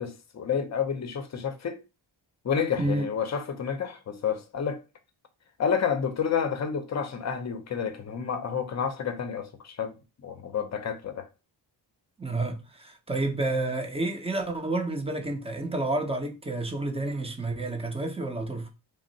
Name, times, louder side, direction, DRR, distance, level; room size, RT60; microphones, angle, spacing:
voice 1, 0.0-1.8 2.4-4.8 5.6-11.3, left 7 dB, 35° left, 0.6 m, -30 dB
voice 2, 12.2-18.7, right 2 dB, 15° right, 0.6 m, -30 dB
2.5 x 2.0 x 3.9 m
cardioid pair, 65°, 45 cm